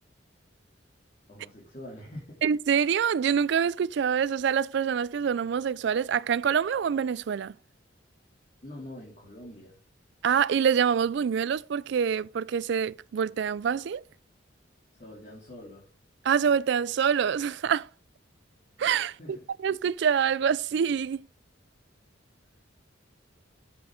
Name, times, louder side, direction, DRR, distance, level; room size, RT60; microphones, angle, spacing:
voice 1, 1.3-2.4 8.6-9.8 14.9-15.9 19.1-19.5, left 1 dB, 40° left, 2.9 m, -45 dB
voice 2, 2.4-7.5 10.2-14.0 16.2-17.9 18.8-21.2, right 7 dB, 60° right, 0.3 m, -26 dB
7.8 x 7.8 x 3.8 m
head